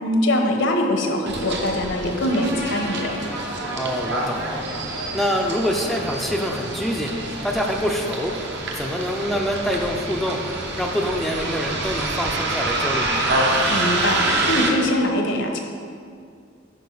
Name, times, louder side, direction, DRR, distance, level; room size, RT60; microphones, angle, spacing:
voice 1, 0.0-3.1 13.7-15.6, left 1 dB, 70° left, 3 dB, 0.9 m, -22 dB
Bus, 1.3-14.7, right 2 dB, 60° right, 1.0 m, -26 dB
voice 2, 3.7-4.6 5.1-7.1 7.4-8.3 8.8-10.4 10.8-13.2, equal, ahead, 0 dB, 0.5 m, -25 dB
10.0 x 5.0 x 3.9 m, 2.3 s
head